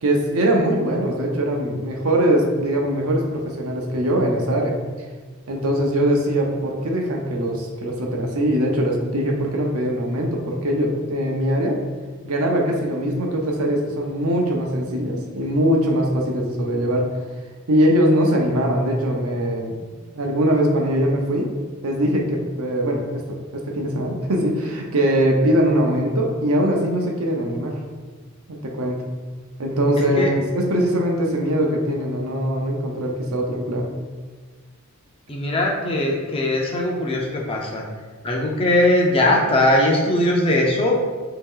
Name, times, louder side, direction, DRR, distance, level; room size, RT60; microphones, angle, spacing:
voice 1, 0.0-4.7 5.5-11.8 12.2-17.1 17.7-19.8 20.1-21.5 21.8-27.8 28.5-29.0 29.6-33.8, equal, 80° right, 0 dB, 0.7 m, -21 dB
voice 2, 35.3-37.8 38.2-41.1, left 1 dB, 25° left, 0 dB, 0.5 m, -20 dB
3.1 x 2.8 x 3.7 m, 1.4 s
head